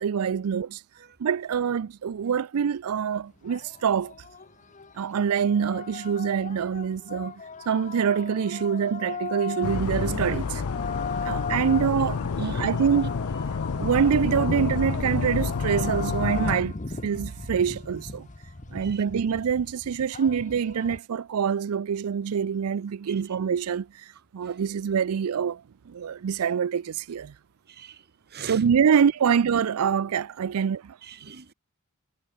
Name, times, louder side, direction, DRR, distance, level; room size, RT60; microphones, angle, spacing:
voice 1, 0.0-0.8 1.2-4.1 5.0-7.3 7.7-10.6 11.2-13.1 13.8-16.7 17.0-18.3 18.7-23.9 24.3-27.3 28.5-31.0, right 7 dB, 80° right, 0.4 m, -25 dB
sound 1, 3.4-21.0, left 4 dB, 35° left, 1.1 m, -38 dB
sound 2, 9.6-16.6, left 5 dB, 75° left, 0.6 m, -29 dB
voice 2, 12.4-12.7 18.8-19.0 27.7-28.0 28.3-28.6 30.6-30.7 31.0-31.5, right 7 dB, 50° right, 1.6 m, -43 dB
head